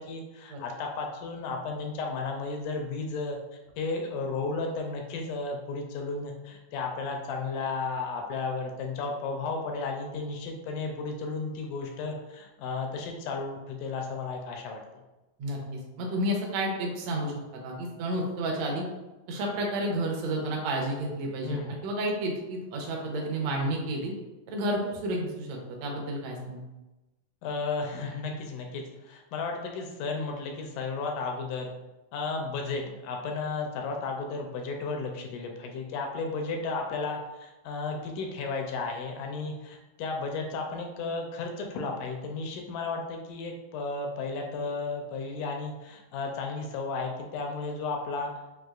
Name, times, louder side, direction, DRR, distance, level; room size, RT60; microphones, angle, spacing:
voice 1, 0.0-3.4 3.8-15.0 21.4-21.8 23.5-23.7 27.4-31.7 32.1-48.3, left 4 dB, 80° left, 2 dB, 1.9 m, -34 dB
voice 2, 15.4-17.3 17.6-18.9 19.3-21.6 21.8-24.1 24.5-26.6, right 1 dB, 75° right, 0 dB, 1.6 m, -31 dB
6.3 x 2.4 x 2.4 m, 1.0 s
omnidirectional pair, 3.9 m